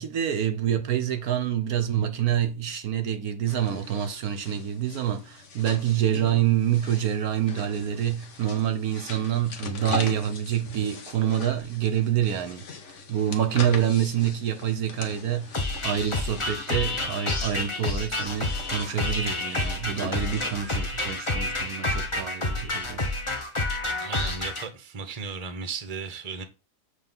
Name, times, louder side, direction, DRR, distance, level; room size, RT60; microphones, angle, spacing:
voice 1, 0.0-12.6 13.1-23.1, right 10 dB, 70° right, 1.0 m, -27 dB
sound 1, 3.5-20.7, left 4 dB, 50° left, 1.2 m, -41 dB
sound 2, 15.5-24.6, left 2 dB, 20° left, 0.9 m, -29 dB
voice 2, 24.0-26.4, right 5 dB, 30° right, 0.8 m, -35 dB
7.9 x 3.4 x 5.3 m
omnidirectional pair, 1.8 m